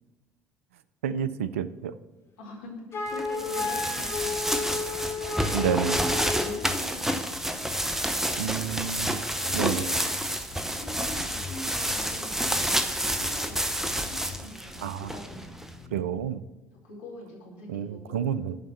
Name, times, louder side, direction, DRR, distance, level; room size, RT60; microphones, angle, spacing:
voice 1, 1.0-2.0 5.5-6.0 8.4-9.2 9.5-9.9 14.8-15.1 15.9-16.4 17.7-18.6, right 8 dB, 75° right, 14 dB, 0.4 m, -29 dB
voice 2, 2.4-5.6 6.2-8.6 9.1-10.0 10.5-15.6 16.8-18.2, left 1 dB, 65° left, -2 dB, 2.5 m, -44 dB
Wind instrument woodwind instrument, 2.9-6.6, left 4 dB, 35° left, 1.4 m, -32 dB
sound 1, 3.2-15.7, equal, 5° right, 0.8 m, -29 dB
sound 2, 6.6-16.2, left 5 dB, 85° left, 3.4 m, -46 dB
7.2 x 5.7 x 7.1 m, 1.2 s
figure-of-eight pair, 60°, 7 cm